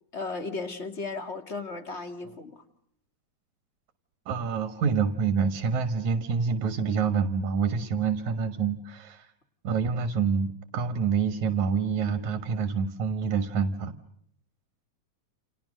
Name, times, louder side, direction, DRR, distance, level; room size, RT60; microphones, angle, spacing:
voice 1, 0.1-2.6, left 3 dB, 25° left, 2.2 m, -35 dB
voice 2, 4.3-9.3 9.6-13.9, right 6 dB, 75° right, 2.8 m, -27 dB
29.5 x 29.0 x 6.4 m
omnidirectional pair, 3.4 m